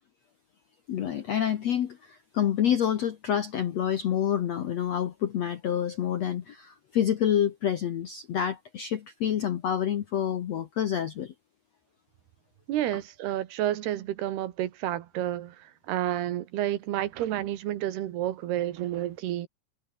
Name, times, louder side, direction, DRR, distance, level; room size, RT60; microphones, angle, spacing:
voice 1, 0.9-11.3, left 9 dB, 70° left, 1.5 m, -28 dB
voice 2, 12.7-19.5, right 13 dB, 75° right, 3.3 m, -30 dB
omnidirectional pair, 4.9 m